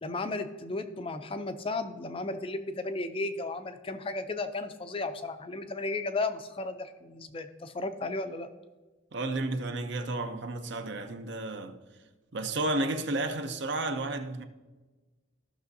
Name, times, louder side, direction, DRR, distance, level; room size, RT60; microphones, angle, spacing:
voice 1, 0.0-8.5, left 2 dB, 25° left, 0.4 m, -34 dB
voice 2, 9.1-11.8 12.3-14.4, right 2 dB, 55° right, 0.6 m, -32 dB
15.0 x 6.0 x 2.7 m
head